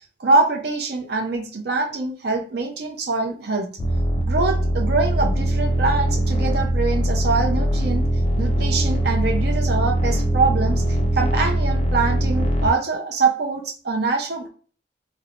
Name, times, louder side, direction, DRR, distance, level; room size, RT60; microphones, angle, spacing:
voice 1, 0.2-3.7 4.2-8.0 8.4-10.8 11.1-14.5, right 3 dB, 55° right, 3 dB, 0.6 m, -24 dB
sound 1, 3.8-12.7, right 1 dB, 30° left, 0.4 m, -21 dB
3.1 x 2.1 x 2.4 m, 0.43 s
head